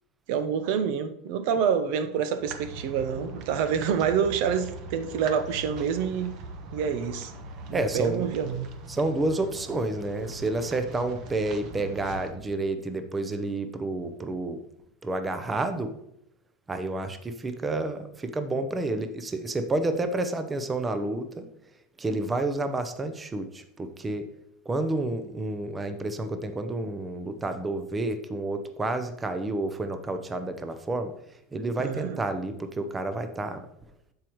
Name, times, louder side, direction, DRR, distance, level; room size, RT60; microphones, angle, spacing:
voice 1, 0.3-6.4 6.7-7.3 7.7-8.7 31.8-32.2, right 7 dB, 65° right, 0.7 m, -27 dB
sound 1, 2.4-12.3, right 3 dB, 45° right, 1.1 m, -41 dB
voice 2, 7.7-8.2 8.9-14.6 15.0-15.9 16.7-21.5 22.0-24.3 24.7-31.1 31.5-33.7, right 2 dB, 15° right, 0.7 m, -30 dB
13.5 x 4.9 x 3.0 m
supercardioid pair, 140°, 0 cm